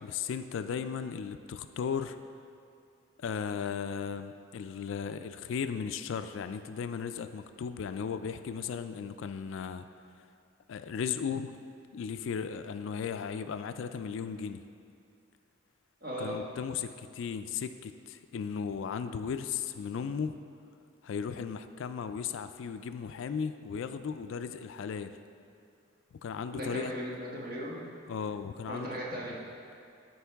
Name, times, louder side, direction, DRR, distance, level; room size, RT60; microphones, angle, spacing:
voice 1, 0.0-2.2 3.2-9.9 10.7-11.6 11.9-14.6 16.2-20.4 21.0-25.1 26.2-26.9 28.1-29.0, left 6 dB, 70° left, 10 dB, 0.3 m, -36 dB
voice 2, 16.0-16.4 26.5-27.8 28.7-29.3, equal, 45° right, -5 dB, 1.5 m, -37 dB
13.0 x 4.6 x 3.5 m, 2.6 s
head